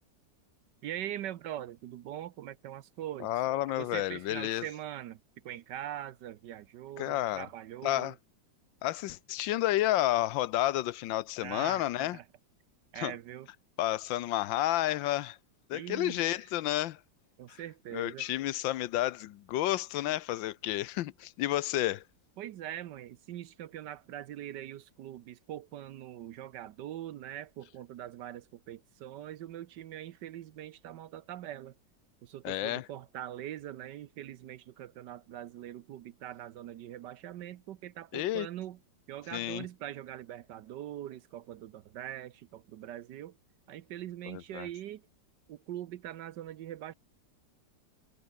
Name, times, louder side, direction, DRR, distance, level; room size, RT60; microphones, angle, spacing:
voice 1, 0.8-3.4 3.8-5.2 5.4-8.2 11.4-12.2 12.9-13.5 15.7-16.4 17.4-18.3 22.4-31.7 32.2-38.8 39.1-43.4 43.7-45.1 45.5-46.9, right 12 dB, 75° right, 1.3 m, -42 dB
voice 2, 3.2-4.7 7.0-7.5 7.8-8.1 8.8-12.2 12.9-13.1 13.8-15.4 15.7-17.0 17.5-17.6 17.9-22.0 32.4-32.9 38.1-38.5 39.3-39.7 44.3-44.7, left 14 dB, 90° left, 1.5 m, -31 dB
omnidirectional pair, 2.0 m